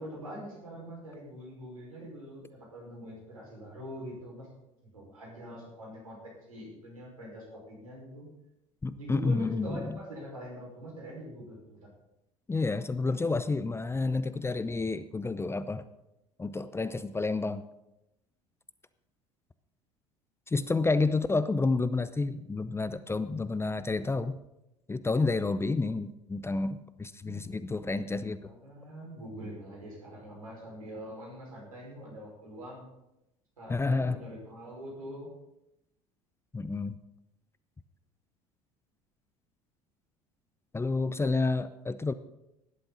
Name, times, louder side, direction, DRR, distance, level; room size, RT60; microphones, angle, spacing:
voice 1, 0.0-4.5 4.9-8.3 9.0-11.9 27.2-27.6 28.4-32.8 33.6-35.3, equal, 80° right, -2 dB, 5.2 m, -43 dB
voice 2, 8.8-9.8 12.5-15.8 16.4-17.6 20.5-24.4 24.9-28.5 33.7-34.2 36.5-37.0 40.7-42.1, left 3 dB, 15° left, 14 dB, 0.7 m, -30 dB
17.5 x 11.5 x 4.0 m, 0.89 s
figure-of-eight pair, 65°, 18 cm